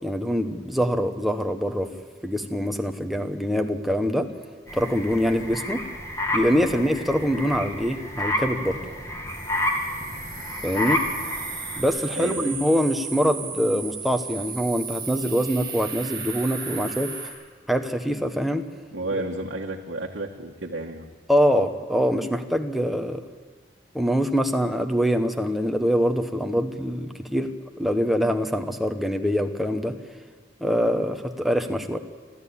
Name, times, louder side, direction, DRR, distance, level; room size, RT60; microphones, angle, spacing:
voice 1, 0.0-1.9 2.2-4.3 4.7-5.8 6.3-8.8 10.6-11.0 11.8-17.1 17.7-18.6 21.3-23.2 23.9-27.5 27.8-30.0 30.6-32.0, equal, ahead, 5 dB, 1.0 m, -24 dB
sound 1, 4.7-11.8, left 1 dB, 15° left, 2.5 m, -30 dB
sound 2, 9.3-17.3, right 5 dB, 25° right, 7.8 m, -35 dB
voice 2, 12.2-12.5 18.9-21.1, right 2 dB, 65° right, -2 dB, 1.5 m, -32 dB
28.5 x 13.0 x 8.7 m, 1.5 s
head